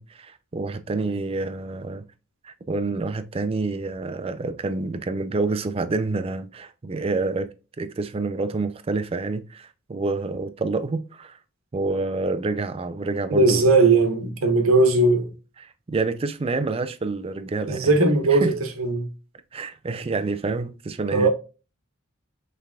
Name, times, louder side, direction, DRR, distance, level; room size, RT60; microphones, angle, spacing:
voice 1, 0.0-2.0 2.4-7.5 7.8-11.4 11.7-13.6 15.6-17.9 18.3-18.5 19.5-21.3, right 3 dB, 25° right, 0.4 m, -28 dB
voice 2, 13.3-15.3 17.7-19.1 21.1-21.3, right 3 dB, 80° right, 1.0 m, -19 dB
5.7 x 3.4 x 2.3 m
head